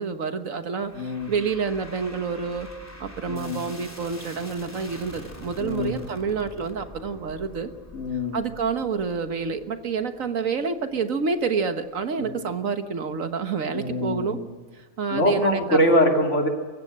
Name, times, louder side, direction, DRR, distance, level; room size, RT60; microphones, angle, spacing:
voice 1, 0.0-2.7 3.0-7.7 8.3-14.4 15.0-15.8, right 5 dB, 90° right, 8 dB, 1.7 m, -28 dB
sound 1, 0.8-12.1, left 1 dB, 10° left, 3.4 m, -45 dB
voice 2, 0.9-1.3 3.3-3.6 5.6-6.0 7.9-8.4 12.2-12.4 13.7-14.4 15.1-16.5, left 1 dB, 65° left, 2 dB, 3.0 m, -24 dB
23.0 x 16.0 x 8.7 m, 1.5 s
omnidirectional pair, 1.3 m